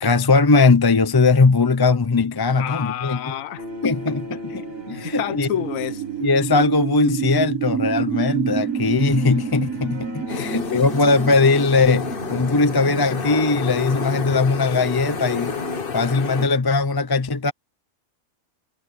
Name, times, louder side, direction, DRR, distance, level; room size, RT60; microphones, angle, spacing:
voice 1, 0.0-3.3 3.8-4.2 4.5-5.5 6.2-15.6 15.9-17.5, left 3 dB, 25° left, 0.5 m, -19 dB
voice 2, 2.6-3.7 4.5-6.0 10.3-10.8, left 10 dB, 80° left, 1.2 m, -30 dB
sound 1, 2.7-14.8, right 8 dB, 85° right, 2.0 m, -30 dB
sound 2, 3.6-7.1 8.5-15.8, right 1 dB, 45° right, 4.0 m, -38 dB
sound 3, 10.3-16.5, left 5 dB, 45° left, 1.3 m, -30 dB
omnidirectional pair, 1.4 m